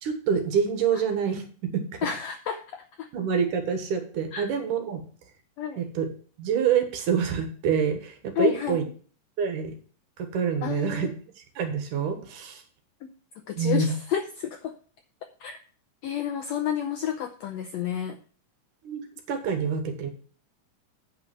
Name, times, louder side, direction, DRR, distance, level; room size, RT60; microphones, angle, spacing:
voice 1, 0.0-1.8 3.1-5.0 5.8-6.1 6.4-8.8 9.4-9.7 10.2-11.1 11.4-12.6 13.6-14.0 18.8-20.1, right 6 dB, 70° right, 6 dB, 2.9 m, -26 dB
voice 2, 2.0-3.1 4.3-4.5 5.6-5.8 8.4-8.8 10.6-11.1 13.0-13.1 13.5-14.7 15.4-15.6 16.0-18.2, left 9 dB, 90° left, 7 dB, 1.5 m, -30 dB
8.8 x 5.9 x 5.9 m, 0.42 s
omnidirectional pair, 3.9 m